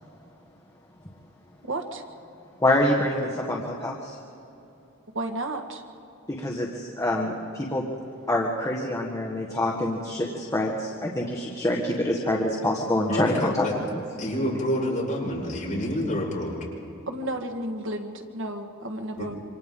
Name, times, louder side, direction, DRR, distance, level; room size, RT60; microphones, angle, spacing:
voice 1, 1.6-2.0 5.1-5.8 17.1-19.3, right 1 dB, 60° right, 4 dB, 1.6 m, -32 dB
voice 2, 2.6-4.2 6.3-7.9 8.3-14.0, left 1 dB, 15° left, -2 dB, 1.5 m, -26 dB
voice 3, 13.0-13.7 14.2-16.6 19.2-19.3, equal, 35° left, -4 dB, 5.8 m, -28 dB
27.5 x 25.5 x 3.8 m, 2.8 s
head